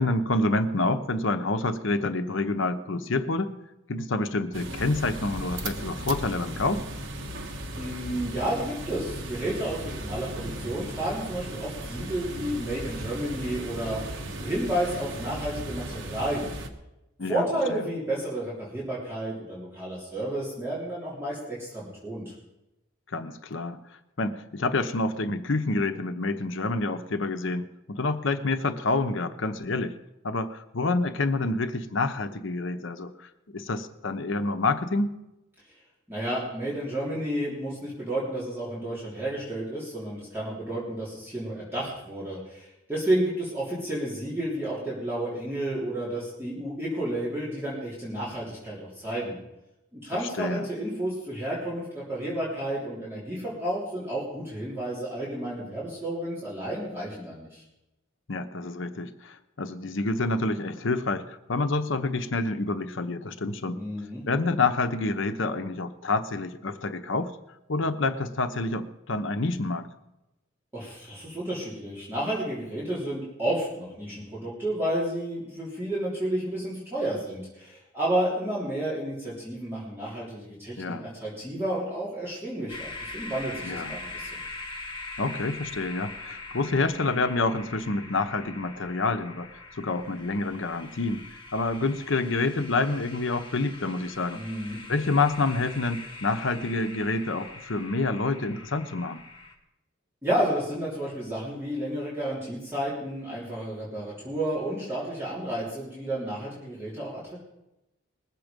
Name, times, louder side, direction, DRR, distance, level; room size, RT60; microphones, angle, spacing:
voice 1, 0.0-3.5 3.9-6.8 17.2-17.8 23.1-23.8 24.2-29.9 30.2-33.1 33.5-35.1 50.4-50.7 58.3-63.8 64.3-67.3 67.7-69.9 80.8-81.1 83.7-84.0 85.2-89.5 89.8-91.2 91.5-94.4 94.9-99.2, left 3 dB, 70° left, 9 dB, 0.9 m, -28 dB
sound 1, 4.5-16.7, right 1 dB, 65° right, 1.4 m, -36 dB
voice 2, 7.8-16.6 17.2-22.3 36.1-49.4 49.9-57.6 63.7-64.3 70.7-84.4 94.3-94.8 100.2-107.4, right 1 dB, 10° right, -8 dB, 3.5 m, -31 dB
sound 2, 82.7-99.5, left 3 dB, 25° left, 1.7 m, -42 dB
20.5 x 7.6 x 5.2 m, 0.93 s
head